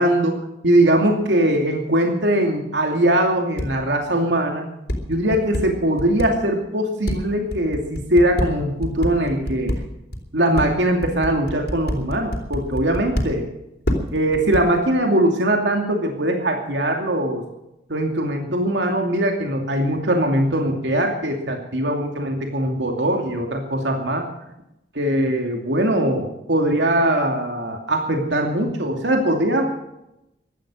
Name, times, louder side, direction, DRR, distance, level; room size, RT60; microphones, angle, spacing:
voice 1, 0.0-4.6 5.1-9.7 10.3-13.5 14.1-17.4 17.9-24.3 24.9-29.7, right 1 dB, 85° right, 3 dB, 2.6 m, -21 dB
sound 1, 3.6-3.7 4.9-6.2 7.1-9.8 10.1-10.2 10.6-13.2 13.9-14.8, equal, 60° left, 3.6 m, -24 dB
16.0 x 12.5 x 6.3 m, 0.85 s
head